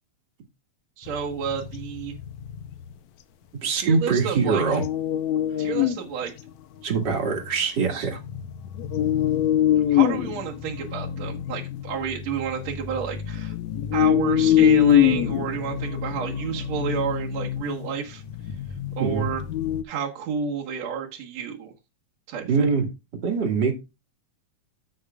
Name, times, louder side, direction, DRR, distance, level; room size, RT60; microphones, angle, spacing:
voice 1, 1.0-2.2 3.7-4.6 5.6-6.3 7.9-8.1 9.9-13.5 13.9-18.2 19.0-19.4 19.8-21.7 22.3-22.4, right 7 dB, 65° right, 2.6 m, -30 dB
sound 1, 1.1-2.9 4.6-6.1 6.4-6.5 7.0-7.5 8.0-19.8, left 11 dB, 75° left, 2.0 m, -24 dB
voice 2, 3.6-4.8 6.8-8.2 19.0-19.3 22.5-22.9 23.2-23.7, right 5 dB, 40° right, 2.5 m, -23 dB
14.5 x 6.3 x 2.4 m
omnidirectional pair, 3.5 m